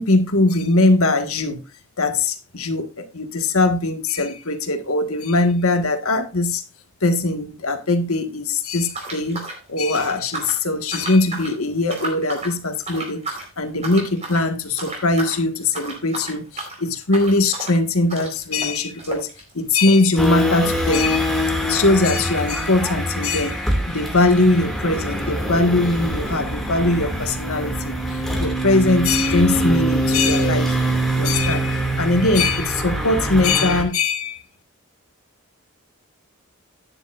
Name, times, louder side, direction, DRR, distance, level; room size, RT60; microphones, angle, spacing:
voice 1, 0.0-1.6 2.0-6.6 7.0-19.3 19.6-21.3 21.6-23.6 23.9-30.8 31.1-34.4, left 2 dB, 85° left, 1.7 m, -21 dB
sound 1, 8.9-10.6 10.9-11.5 11.8-12.6 12.9-13.5 13.8-14.5 14.8-15.4 15.7-21.4 21.7-21.8 21.9-22.1 22.7-22.8, right 2 dB, 30° right, 4.2 m, -33 dB
sound 2, 20.2-33.8, equal, ahead, 2.3 m, -23 dB
12.0 x 10.0 x 2.5 m
head